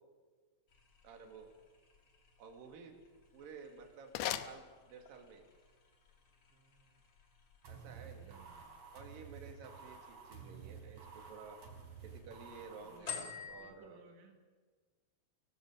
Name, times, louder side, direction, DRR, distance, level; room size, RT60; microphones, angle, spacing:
sound 1, 0.7-13.7, left 6 dB, 40° left, 1.8 m, -54 dB
voice 1, 1.0-1.5 2.4-3.0 3.3-4.1 4.4-5.5 7.7-8.4 8.9-11.6 12.0-14.0, right 5 dB, 55° right, 2 dB, 3.7 m, -53 dB
sound 2, 3.2-5.3, left 12 dB, 75° left, 2.4 m, -42 dB
voice 2, 6.5-7.0 8.0-8.8 12.8-14.4, right 5 dB, 75° right, 3 dB, 3.7 m, -63 dB
sound 3, 7.6-13.0, right 6 dB, 40° right, 4.3 m, -52 dB
23.5 x 16.0 x 7.9 m, 1.5 s
omnidirectional pair, 5.3 m